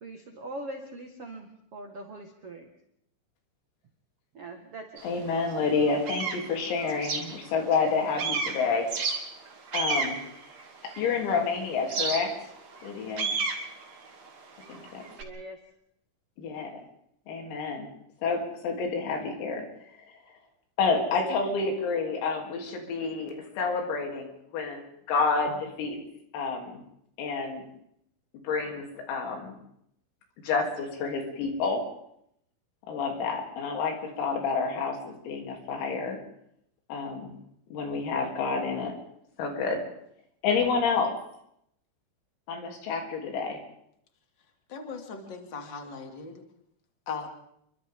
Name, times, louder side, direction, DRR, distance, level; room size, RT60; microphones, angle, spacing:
voice 1, 0.0-2.7 4.3-5.0 14.6-15.6, right 1 dB, 80° right, 3 dB, 1.3 m, -42 dB
voice 2, 5.0-8.9 9.7-10.2 10.8-12.3 12.8-13.3 14.7-15.0 16.4-16.7 17.3-17.9 18.2-19.6 20.8-26.0 26.3-26.8 27.2-27.7 28.4-29.6 30.4-31.8 32.9-36.2 36.9-37.3 37.7-38.9 39.4-39.8 40.4-41.1 42.5-43.6, left 4 dB, 80° left, 2 dB, 6.1 m, -29 dB
sound 1, 5.0-5.1 5.6-7.9 8.2-11.3 11.9-15.2, right 4 dB, 40° right, 3.0 m, -32 dB
voice 3, 44.7-46.4 47.1-47.3, left 5 dB, 30° left, 3 dB, 2.2 m, -38 dB
29.0 x 24.0 x 3.8 m, 0.72 s
omnidirectional pair, 6.0 m